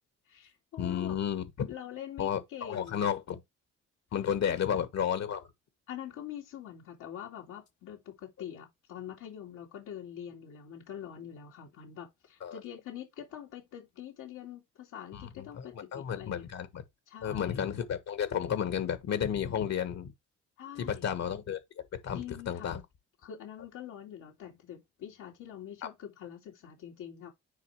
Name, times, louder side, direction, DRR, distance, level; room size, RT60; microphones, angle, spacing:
voice 1, 0.3-1.2 1.6-3.1 4.1-4.7 5.9-16.5 17.1-17.7 20.6-21.1 22.1-22.8 23.2-27.3, left 10 dB, 85° left, 2.6 m, -45 dB
voice 2, 0.8-1.7 2.2-3.4 4.1-5.4 12.4-12.6 15.1-15.6 15.9-16.8 17.2-20.1 20.8-21.6 21.9-22.8, left 8 dB, 60° left, 1.5 m, -32 dB
9.7 x 3.6 x 3.2 m
cardioid pair, 90°, 30 cm